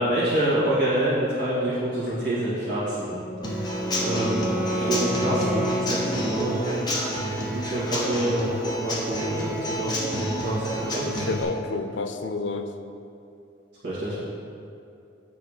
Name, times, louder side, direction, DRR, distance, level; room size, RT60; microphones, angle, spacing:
voice 1, 0.0-3.2 4.0-4.5 4.9-6.9 7.5-11.1 13.8-14.2, right 1 dB, 65° right, -11 dB, 2.0 m, -27 dB
Wind instrument woodwind instrument, 3.0-6.9, equal, 5° right, 0.5 m, -30 dB
Human voice / Acoustic guitar / Drum, 3.4-11.4, equal, 25° left, 1.3 m, -29 dB
voice 2, 11.0-12.7, left 3 dB, 85° left, 7 dB, 0.6 m, -30 dB
9.2 x 4.1 x 6.4 m, 2.6 s
head